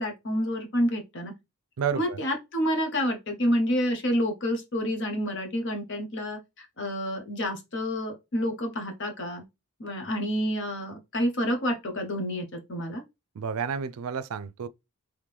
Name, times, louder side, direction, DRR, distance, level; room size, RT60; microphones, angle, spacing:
voice 1, 0.0-1.3 1.9-9.4 9.8-13.0, equal, 55° left, 1.1 m, -29 dB
voice 2, 1.8-2.2 13.4-14.7, right 6 dB, 80° right, 0.4 m, -30 dB
3.7 x 3.1 x 3.3 m
head